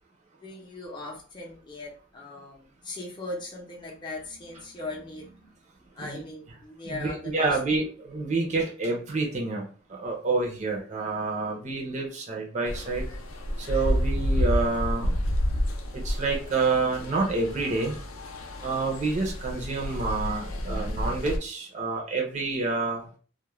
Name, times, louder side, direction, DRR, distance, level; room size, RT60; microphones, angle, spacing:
voice 1, 0.4-5.5 5.9-7.8 18.3-18.7 20.2-21.1, left 2 dB, 20° left, -3 dB, 0.6 m, -40 dB
voice 2, 6.9-13.1 13.6-15.2 16.0-17.9 18.6-23.1, right 3 dB, 35° right, -1 dB, 0.5 m, -28 dB
sound 1, 12.6-21.4, equal, 85° left, 0.4 m, -30 dB
2.3 x 2.1 x 3.0 m, 0.41 s
head